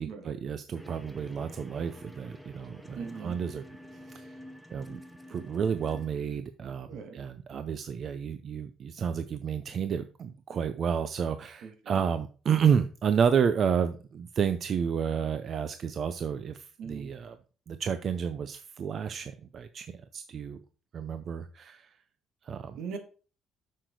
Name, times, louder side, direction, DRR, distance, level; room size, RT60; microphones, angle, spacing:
voice 1, 0.0-3.7 3.9-4.4 4.7-5.0 5.3-17.4 17.7-20.6 20.9-21.9 22.4-22.8, right 7 dB, 45° right, 10 dB, 0.5 m, -30 dB
sound 1, 0.7-6.1, left 1 dB, ahead, 1.0 m, -48 dB
voice 2, 3.0-3.4 6.9-7.2 11.6-12.0 16.8-17.1 22.8-23.0, right 5 dB, 70° right, 6 dB, 2.0 m, -40 dB
7.8 x 6.6 x 4.6 m, 0.37 s
cardioid pair, 145°, 0 cm